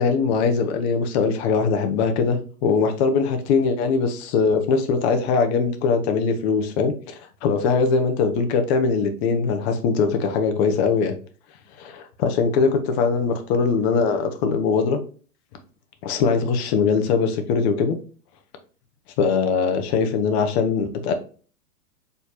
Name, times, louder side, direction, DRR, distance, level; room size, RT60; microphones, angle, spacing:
voice 1, 0.0-11.1 11.8-15.0 16.0-18.0 19.2-21.1, left 5 dB, 45° left, 0.9 m, -21 dB
4.6 x 3.3 x 2.8 m
hypercardioid pair, 130°, 45 cm